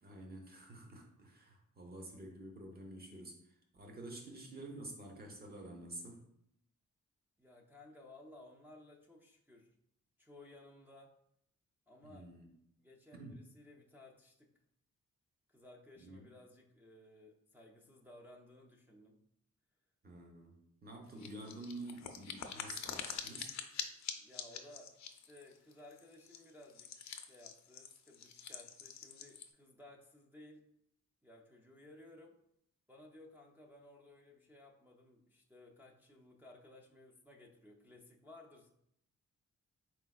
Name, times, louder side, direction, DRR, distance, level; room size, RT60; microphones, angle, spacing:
voice 1, 0.0-6.2 12.0-12.5 13.1-13.4 16.0-16.3 20.0-23.5, right 1 dB, 30° right, 2 dB, 0.8 m, -49 dB
voice 2, 7.4-9.7 10.2-11.1 11.9-12.3 12.8-14.5 15.5-19.2 24.2-26.9 27.2-30.6 31.2-32.3 32.9-38.7, left 1 dB, 5° right, -3 dB, 0.4 m, -58 dB
sound 1, 21.2-29.5, left 7 dB, 60° left, 0.5 m, -46 dB
4.5 x 4.2 x 2.3 m, 0.74 s
wide cardioid pair, 160°, 31 cm